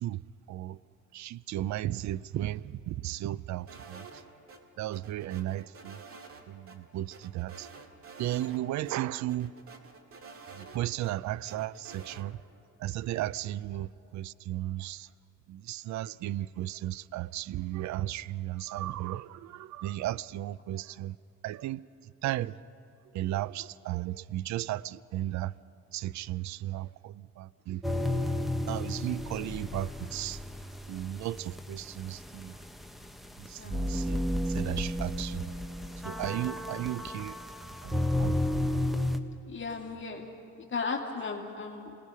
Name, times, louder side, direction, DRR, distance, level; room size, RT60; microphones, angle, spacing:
voice 1, 1.1-4.1 4.8-6.0 6.5-7.7 8.2-9.5 10.6-12.4 12.8-15.1 15.5-21.2 21.4-21.8 22.2-22.6 23.1-25.5 25.9-28.0 28.6-30.4 30.9-32.5 33.5-34.2 34.5-35.4 36.0-37.4 37.8-38.4, right 14 dB, 70° right, 0.5 m, -35 dB
sound 1, 3.7-4.6 4.9-6.4 6.7-6.8 7.1-8.6 8.8-8.9 9.3-11.1 11.5-12.2, right 4 dB, 50° right, 2.1 m, -49 dB
sound 2, 27.8-39.2, left 1 dB, ahead, 1.1 m, -33 dB
voice 2, 39.5-40.3 40.6-42.0, left 4 dB, 40° left, 2.3 m, -35 dB
27.5 x 19.5 x 5.6 m
cardioid pair, 90°, 30 cm